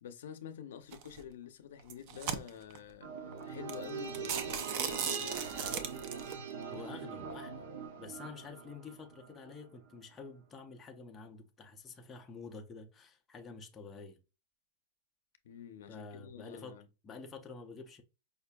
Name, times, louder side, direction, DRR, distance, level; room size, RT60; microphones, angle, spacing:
voice 1, 0.0-3.1 3.4-5.5 15.4-16.9, left 8 dB, 75° left, 0.5 m, -48 dB
sound 1, 0.9-1.2 1.8-2.8 3.3-3.4 3.7-3.8 4.1-6.3, right 7 dB, 40° right, 0.4 m, -37 dB
sound 2, 3.0-9.6 9.9-10.0, right 6 dB, 70° right, 0.8 m, -43 dB
voice 2, 6.7-7.6 8.0-14.2 15.9-16.8 17.0-18.0, left 4 dB, 15° left, 0.5 m, -48 dB
5.1 x 2.5 x 2.2 m
supercardioid pair, 165°, 0 cm